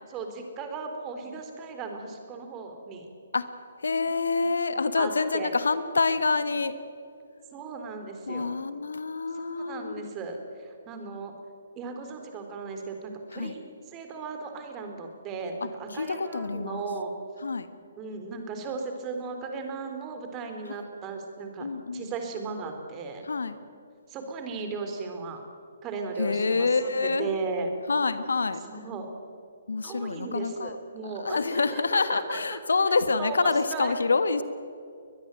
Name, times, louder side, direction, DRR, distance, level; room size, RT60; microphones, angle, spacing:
voice 1, 0.1-3.1 5.0-5.5 7.5-8.6 9.3-11.3 11.8-17.1 18.0-21.7 21.9-23.2 24.1-25.4 25.8-27.7 28.7-29.1 29.8-32.6 33.1-33.9, right 4 dB, 25° right, 5 dB, 3.9 m, -36 dB
voice 2, 3.8-6.7 8.3-9.9 13.3-13.5 15.9-16.9 17.4-17.7 21.6-22.1 23.3-23.6 26.2-27.3 27.9-28.6 29.7-30.7 31.2-34.4, left 4 dB, 70° left, 12 dB, 1.5 m, -27 dB
22.5 x 20.5 x 9.2 m, 2.3 s
figure-of-eight pair, 130°, 0 cm